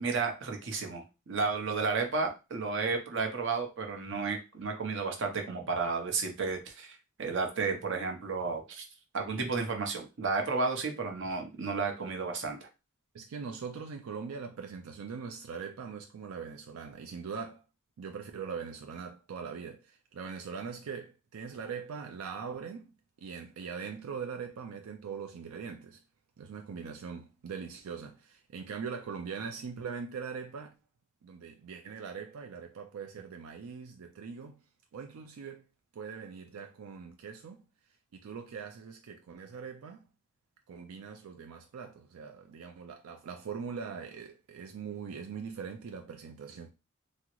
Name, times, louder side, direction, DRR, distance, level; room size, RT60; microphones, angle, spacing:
voice 1, 0.0-8.8 9.1-12.6, right 4 dB, 60° right, 0.7 m, -32 dB
voice 2, 13.1-17.6 18.0-22.9 23.2-26.0 26.4-30.7 31.2-34.6 34.9-35.6 35.9-37.6 38.1-40.0 40.7-46.7, right 6 dB, 90° right, 0.4 m, -41 dB
3.6 x 2.0 x 3.0 m
head